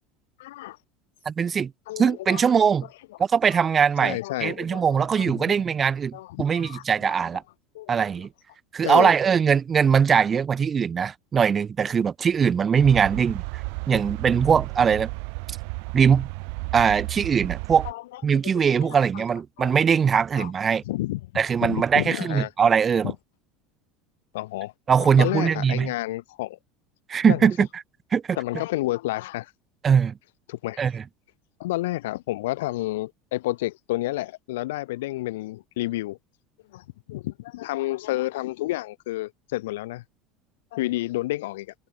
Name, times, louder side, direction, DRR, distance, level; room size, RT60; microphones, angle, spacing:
voice 1, 0.4-0.8 1.9-2.5 4.0-4.8 5.2-5.5 6.1-7.1 7.7-8.0 8.8-9.1 13.9-14.0 17.8-18.5 18.8-19.2 19.6-19.7 20.4-20.5 20.9-21.2 21.6-22.5 23.0-23.1 24.3-24.7 25.0-26.6 27.3-27.5 28.4-29.5 30.5-30.9 31.6-36.2 36.7-40.0 40.7-41.7, left 17 dB, 90° left, 3.1 m, -30 dB
voice 2, 1.2-1.7 2.0-2.9 3.2-7.4 7.9-8.3 8.7-13.4 13.9-15.1 15.9-16.3 16.7-17.9 18.2-20.8 21.4-23.1 24.9-25.9 27.1-27.7 28.1-28.4 29.8-30.1 30.8-31.0, right 7 dB, 25° right, 1.3 m, -21 dB
sound 1, 12.8-17.9, right 37 dB, 70° right, 0.7 m, -33 dB
supercardioid pair, 130°, 0 cm